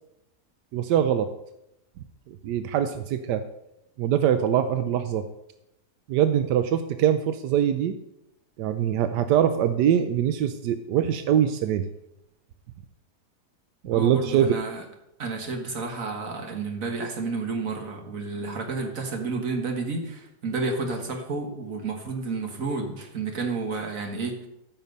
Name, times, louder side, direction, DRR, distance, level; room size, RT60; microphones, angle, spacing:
voice 1, 0.7-1.3 2.3-3.4 4.0-5.2 6.1-7.9 8.6-11.9 13.9-14.6, right 9 dB, 85° right, 9 dB, 1.3 m, -23 dB
voice 2, 13.8-14.8 15.2-24.5, right 3 dB, 55° right, 3 dB, 1.9 m, -31 dB
13.5 x 6.0 x 5.3 m, 0.84 s
omnidirectional pair, 1.8 m